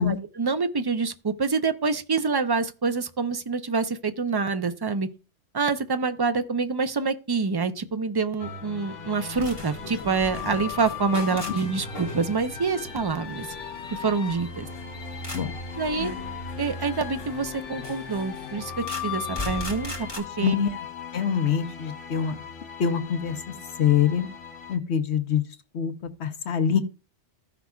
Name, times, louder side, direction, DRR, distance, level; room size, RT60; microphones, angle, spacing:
voice 1, 0.0-5.1 5.5-13.5 13.9-14.7 15.8-16.1 16.6-20.6, right 4 dB, 30° right, 0.4 m, -26 dB
sound 1, 8.4-24.8, left 6 dB, 90° left, 1.3 m, -37 dB
sound 2, 9.3-20.2, left 2 dB, 20° left, 1.5 m, -39 dB
voice 2, 21.1-22.4 22.8-23.4 23.8-24.3 24.7-25.4 25.7-25.9 26.2-26.8, left 8 dB, 70° left, 1.1 m, -24 dB
15.0 x 5.9 x 2.3 m
omnidirectional pair, 1.2 m